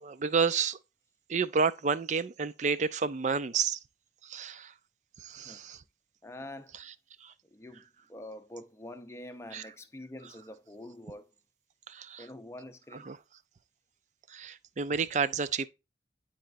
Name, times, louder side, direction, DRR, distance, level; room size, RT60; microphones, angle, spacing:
voice 1, 0.0-0.8 1.3-3.8 4.2-4.7 5.2-5.8 7.2-7.3 9.5-9.6 11.9-12.2 13.1-13.2 14.3-15.7, right 5 dB, 40° right, 0.4 m, -30 dB
voice 2, 6.2-6.7 7.4-11.3 12.2-13.1, left 1 dB, 15° left, 0.6 m, -46 dB
11.5 x 4.3 x 2.6 m
head